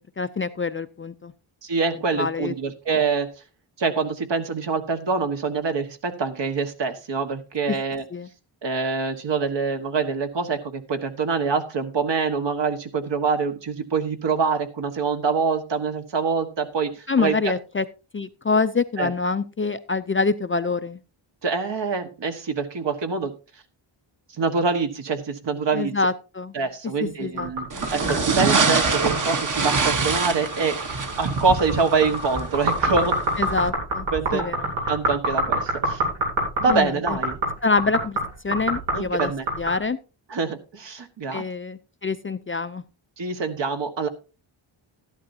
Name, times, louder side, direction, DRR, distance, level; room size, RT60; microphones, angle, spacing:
voice 1, 0.2-1.3 2.2-2.5 7.7-7.8 8.1-8.3 17.1-17.9 18.1-21.0 25.7-26.5 27.2-27.8 33.4-34.1 34.3-34.7 36.7-37.2 37.6-38.2 38.4-39.3 39.6-40.0 41.3-42.8, left 4 dB, 25° left, 11 dB, 0.4 m, -25 dB
voice 2, 1.6-3.3 3.8-8.0 8.6-17.4 19.0-19.1 21.4-23.3 24.4-25.9 26.5-30.8 31.2-33.2 34.1-34.4 34.9-36.0 36.6-37.4 38.9-39.4 40.3-41.4 43.2-44.1, right 4 dB, 60° right, 7 dB, 1.5 m, -25 dB
sound 1, 27.4-39.8, right 1 dB, 90° right, 6.7 m, -27 dB
sound 2, 27.7-33.7, right 4 dB, 40° right, 1.2 m, -25 dB
13.0 x 11.5 x 2.7 m, 0.32 s
wide cardioid pair, 105°, 48 cm